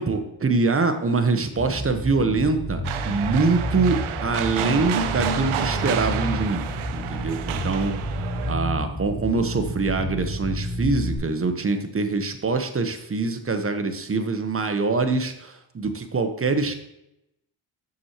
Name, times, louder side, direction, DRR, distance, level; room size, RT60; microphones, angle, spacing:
voice 1, 0.0-6.7 6.9-7.9 8.4-16.7, right 3 dB, 25° right, 7 dB, 1.0 m, -24 dB
Bass guitar, 1.6-11.2, equal, 30° left, 2.4 m, -30 dB
sound 1, 2.8-8.5, right 7 dB, 80° right, 0.7 m, -30 dB
8.3 x 6.3 x 3.0 m, 0.83 s
cardioid pair, 65°, 49 cm